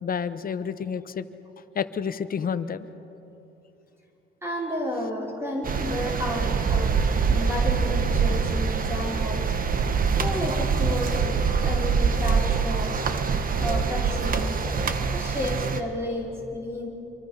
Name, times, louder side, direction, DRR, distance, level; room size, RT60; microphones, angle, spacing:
voice 1, 0.0-1.3 1.7-2.9, left 7 dB, 45° left, 12 dB, 1.0 m, -29 dB
voice 2, 4.4-13.0 13.3-16.9, left 1 dB, 10° right, -3 dB, 4.8 m, -32 dB
sound 1, 5.6-15.8, right 5 dB, 45° right, 1.4 m, -24 dB
27.0 x 23.5 x 5.7 m, 3.0 s
cardioid pair, 90°, 20 cm